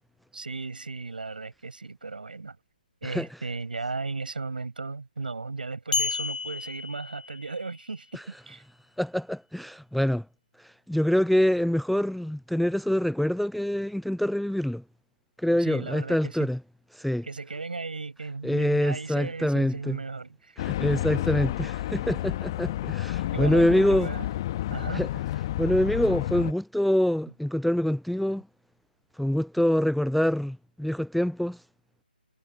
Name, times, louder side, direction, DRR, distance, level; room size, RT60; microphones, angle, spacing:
voice 1, 0.3-2.6 3.0-8.6 15.6-16.4 17.2-20.6 23.3-24.3 24.7-25.1, right 3 dB, 65° right, 6.3 m, -36 dB
sound 1, 5.9-7.8, left 3 dB, 55° left, 0.9 m, -31 dB
voice 2, 9.0-10.2 10.9-14.8 15.4-16.6 16.9-17.2 18.4-20.0 20.6-24.1 24.9-25.1 25.6-28.4 29.2-31.6, equal, ahead, 0.3 m, -25 dB
sound 2, 20.6-26.5, left 14 dB, 25° left, 1.5 m, -30 dB
figure-of-eight pair, 145°, 5 cm